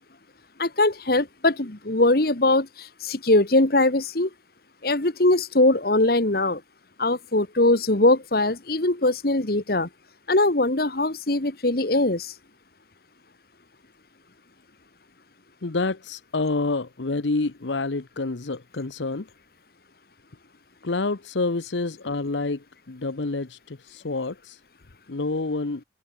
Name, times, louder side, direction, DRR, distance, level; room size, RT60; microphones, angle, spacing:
voice 1, 0.6-4.3 4.8-6.6 7.0-9.9 10.3-12.3, left 2 dB, 55° left, 1.7 m, -21 dB
voice 2, 15.6-19.3 20.8-24.6 25.1-25.8, left 3 dB, 85° left, 1.0 m, -28 dB
head